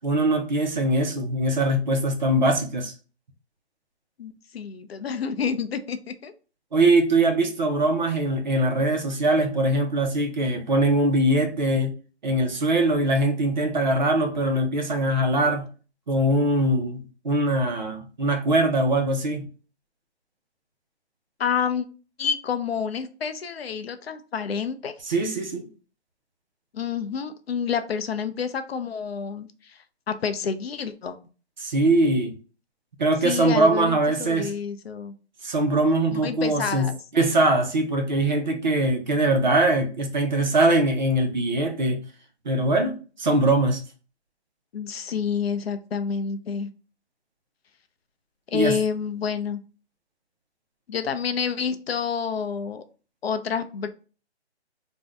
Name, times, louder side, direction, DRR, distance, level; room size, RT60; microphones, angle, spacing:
voice 1, 0.0-2.9 6.7-11.9 12.2-15.7 16.1-19.5 25.1-25.7 31.6-32.4 33.0-34.5 35.4-36.9 37.1-42.0 42.5-43.8 48.5-48.7, right 1 dB, 45° right, 0.5 m, -22 dB
voice 2, 4.2-6.3 21.4-21.9 22.2-24.9 26.7-29.8 30.1-31.2 33.2-35.1 36.1-37.0 44.7-46.7 48.5-49.6 50.9-52.8 53.2-53.9, left 6 dB, 65° left, 0.5 m, -28 dB
2.6 x 2.1 x 3.4 m
hypercardioid pair, 160°, 34 cm